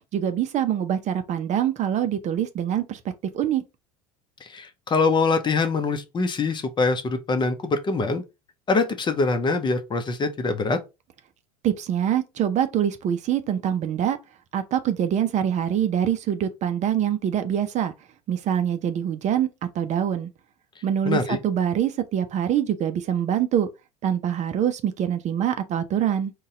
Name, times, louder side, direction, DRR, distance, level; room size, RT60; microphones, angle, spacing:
voice 1, 0.1-3.0 3.3-3.6 11.6-14.2 14.5-17.9 18.3-20.3 20.8-23.7 24.0-26.3, right 9 dB, 40° right, 0.6 m, -24 dB
voice 2, 4.5-8.2 8.7-10.8 21.0-21.4, left 3 dB, 25° left, 0.8 m, -24 dB
4.0 x 2.3 x 3.6 m
hypercardioid pair, 80°, 18 cm